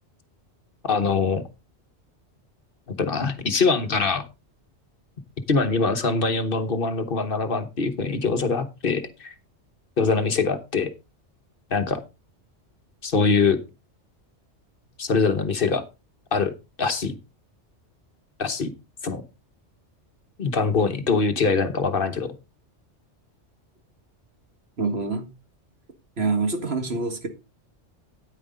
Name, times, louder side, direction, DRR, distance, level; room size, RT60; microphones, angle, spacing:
voice 1, 0.8-1.4 2.9-4.3 5.5-9.3 10.0-10.9 11.7-12.0 13.0-13.6 15.0-15.8 16.3-16.5 16.8-17.1 18.4-18.7 19.0-19.2 20.4-22.3, left 4 dB, 55° left, 1.2 m, -23 dB
voice 2, 24.8-25.2 26.2-27.3, right 3 dB, 60° right, 2.0 m, -25 dB
9.7 x 9.4 x 3.7 m
omnidirectional pair, 1.2 m